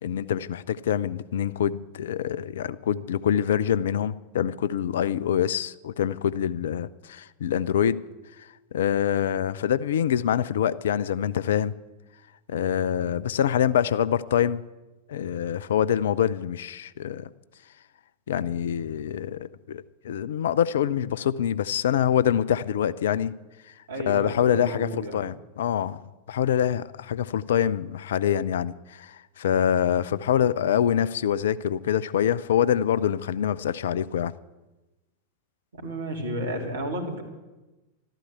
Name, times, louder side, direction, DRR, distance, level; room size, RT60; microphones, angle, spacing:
voice 1, 0.0-8.0 8.4-11.7 12.5-14.6 15.1-17.3 18.3-23.3 24.1-26.0 26.3-34.3, left 9 dB, 60° left, 18 dB, 0.5 m, -25 dB
voice 2, 23.9-25.2 35.7-37.2, right 1 dB, 65° right, 3 dB, 3.1 m, -32 dB
13.0 x 13.0 x 8.1 m, 1.1 s
figure-of-eight pair, 90°, 0 cm